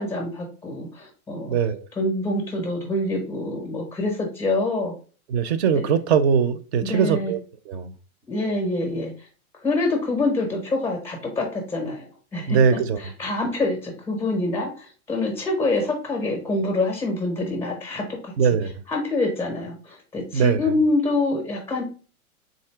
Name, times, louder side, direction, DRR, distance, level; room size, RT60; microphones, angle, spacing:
voice 1, 0.0-1.6 2.0-4.9 5.7-5.9 6.8-7.3 8.3-9.3 9.6-18.3 18.9-21.8, left 2 dB, 5° left, 0.4 m, -26 dB
voice 2, 1.5-1.9 5.3-7.4 7.7-7.9 12.5-13.0 18.4-18.7 20.3-20.6, right 7 dB, 50° right, 0.5 m, -21 dB
3.7 x 2.6 x 4.4 m
hypercardioid pair, 150°, 43 cm